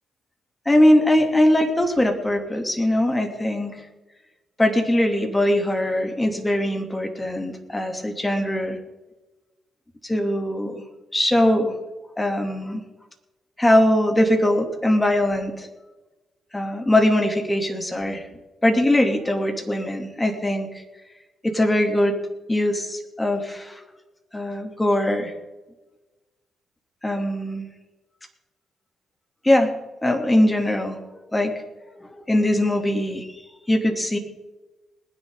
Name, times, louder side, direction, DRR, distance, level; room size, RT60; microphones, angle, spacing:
voice 1, 0.7-3.8 4.6-8.8 10.0-10.8 11.1-11.7 12.2-12.8 13.6-15.7 16.5-18.2 18.6-20.8 21.4-22.1 22.5-23.8 24.3-25.3 27.0-27.7 29.4-29.7 30.0-31.0 31.3-31.5 32.0-33.3 33.7-34.2, left 1 dB, 15° left, 4 dB, 2.8 m, -21 dB
20.5 x 10.0 x 3.8 m, 1.1 s
hypercardioid pair, 45°, 0 cm